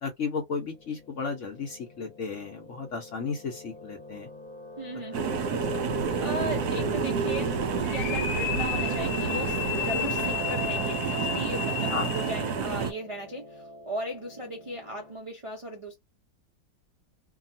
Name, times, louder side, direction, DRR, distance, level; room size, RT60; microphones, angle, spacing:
voice 1, 0.0-4.3 11.9-12.1, left 4 dB, 60° left, 0.8 m, -34 dB
Piano, 0.7-15.2, left 2 dB, 25° left, 0.6 m, -43 dB
voice 2, 4.8-5.2 6.2-15.9, right 1 dB, 55° right, 0.3 m, -37 dB
sound 1, 5.1-12.9, right 5 dB, 70° right, 1.1 m, -29 dB
sound 2, 7.8-12.6, left 14 dB, 85° left, 1.3 m, -33 dB
2.8 x 2.3 x 2.7 m
omnidirectional pair, 1.9 m